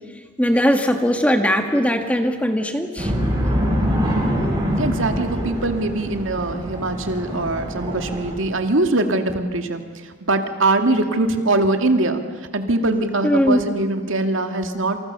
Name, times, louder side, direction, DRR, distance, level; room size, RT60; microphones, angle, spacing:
voice 1, 0.4-3.1 13.2-13.6, equal, 5° left, 5 dB, 1.8 m, -19 dB
sound 1, 3.0-8.4, equal, 20° right, 8.0 m, -24 dB
voice 2, 4.8-12.2 12.5-15.0, right 2 dB, 75° right, 6 dB, 2.3 m, -22 dB
28.0 x 27.5 x 6.8 m, 1.5 s
head